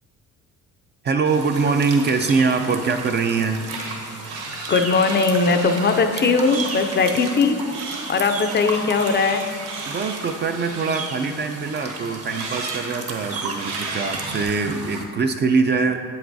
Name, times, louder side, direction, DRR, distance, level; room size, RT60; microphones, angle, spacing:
voice 1, 1.0-3.7 9.9-16.0, right 4 dB, 35° right, 7 dB, 0.4 m, -23 dB
sound 1, 1.3-15.0, right 3 dB, 50° right, 1.1 m, -34 dB
sound 2, 3.7-4.0 4.2-6.0 6.4-7.4 7.7-11.3 11.6-12.9 13.6-14.4, right 3 dB, 80° right, 1.3 m, -35 dB
voice 2, 4.7-7.6 8.1-9.4, left 4 dB, 35° left, 7 dB, 0.5 m, -19 dB
7.9 x 7.8 x 2.6 m, 2.2 s
cardioid pair, 95°, 31 cm